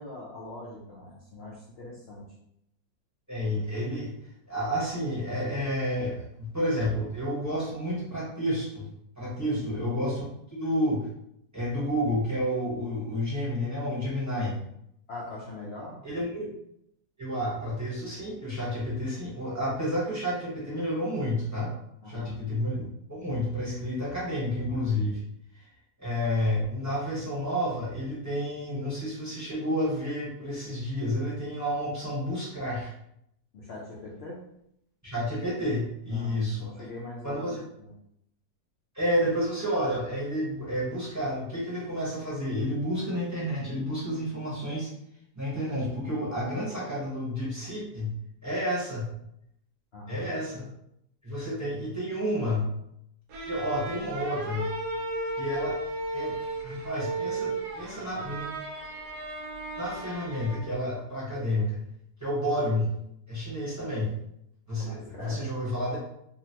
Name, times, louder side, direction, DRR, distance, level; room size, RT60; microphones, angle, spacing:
voice 1, 0.0-2.3 9.5-9.8 15.1-16.0 22.0-22.4 33.5-34.4 36.1-37.5 37.8-37.9 49.9-50.3 64.8-65.4, left 2 dB, 90° left, -5 dB, 0.5 m, -42 dB
voice 2, 3.3-4.1 4.5-8.8 9.2-10.2 10.5-11.1 11.5-14.6 16.0-16.5 17.2-21.7 22.1-22.8 23.1-25.2 26.0-32.9 35.0-36.7 37.2-37.6 38.9-44.9 45.3-49.1 50.1-50.6 51.2-52.8 53.5-54.7 55.3-55.8 56.1-56.3 56.6-58.5 59.8-61.8 62.2-63.0 63.3-64.1 64.7-66.0, equal, 15° right, -8 dB, 0.8 m, -30 dB
sound 1, 53.3-60.8, right 2 dB, 75° right, 1.1 m, -35 dB
3.8 x 2.1 x 2.8 m, 0.77 s
omnidirectional pair, 1.8 m